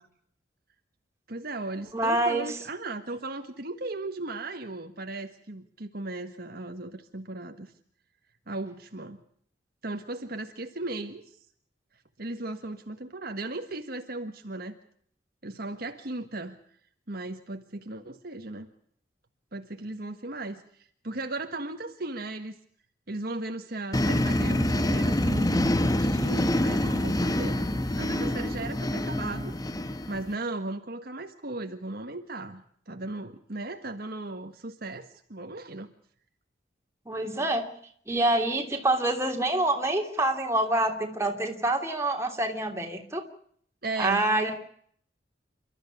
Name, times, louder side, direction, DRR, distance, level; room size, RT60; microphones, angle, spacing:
voice 1, 1.3-7.7 8.5-9.2 9.8-11.4 12.2-14.8 15.4-16.6 17.1-18.7 19.5-22.5 23.1-27.7 28.0-29.5 30.1-35.9 43.8-44.2, right 2 dB, 55° right, 5 dB, 1.6 m, -36 dB
voice 2, 1.9-2.5 37.0-37.7 38.1-43.2 44.0-44.5, right 2 dB, 15° right, 2 dB, 3.2 m, -26 dB
sound 1, 23.9-30.3, left 1 dB, 20° left, 1.1 m, -26 dB
29.5 x 13.5 x 8.4 m, 0.63 s
head